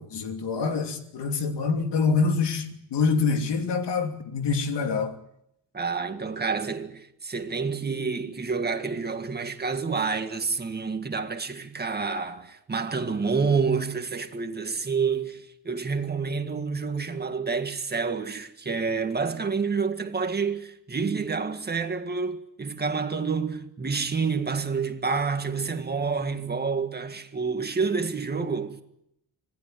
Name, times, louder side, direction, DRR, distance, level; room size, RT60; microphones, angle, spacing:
voice 1, 0.0-5.2, left 4 dB, 90° left, 3.0 m, -26 dB
voice 2, 5.7-28.8, right 5 dB, 25° right, 1.8 m, -28 dB
26.0 x 18.5 x 9.2 m
wide cardioid pair, 170°, 41 cm